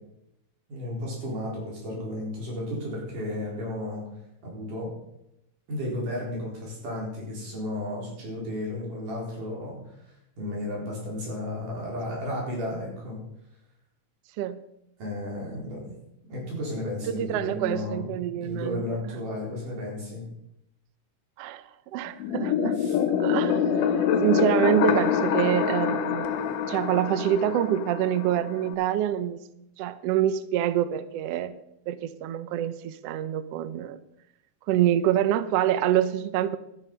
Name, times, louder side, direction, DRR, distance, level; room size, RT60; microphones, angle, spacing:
voice 1, 0.7-4.0 4.4-4.9 5.7-9.8 10.0-13.2 15.0-15.9 16.3-20.2 22.8-23.0, left 1 dB, 75° right, -3 dB, 5.8 m, -33 dB
voice 2, 17.1-18.8 21.4-22.8 23.2-23.6 24.0-26.4 26.7-29.4 29.8-31.5 31.9-34.0 34.7-36.6, right 11 dB, 90° right, 14 dB, 1.4 m, -26 dB
sound 1, 22.2-28.7, left 7 dB, 80° left, 2.5 m, -26 dB
12.0 x 9.9 x 5.5 m, 0.83 s
omnidirectional pair, 3.8 m